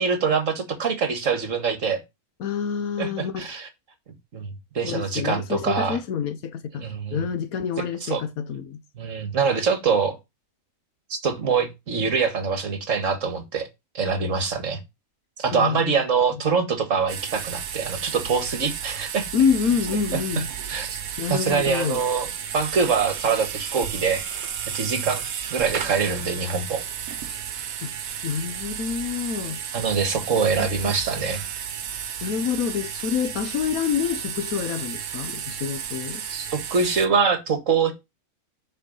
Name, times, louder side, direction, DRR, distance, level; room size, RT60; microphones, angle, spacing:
voice 1, 0.0-2.0 3.0-3.7 4.3-4.5 4.8-6.0 6.7-7.2 8.0-8.2 9.0-10.2 11.2-13.7 13.9-14.8 15.4-19.3 20.1-21.0 21.3-24.3 24.7-25.2 25.5-26.8 29.7-31.4 36.3-37.9, right 5 dB, 60° right, 2.0 m, -24 dB
voice 2, 2.4-3.5 4.8-6.9 7.1-8.8 15.5-16.0 19.3-20.5 21.2-22.0 27.8-27.9 28.2-29.6 30.6-31.0 32.2-36.2, left 7 dB, 75° left, 1.3 m, -27 dB
sound 1, 17.1-37.1, right 8 dB, 75° right, 1.4 m, -33 dB
6.7 x 5.7 x 5.3 m
omnidirectional pair, 1.5 m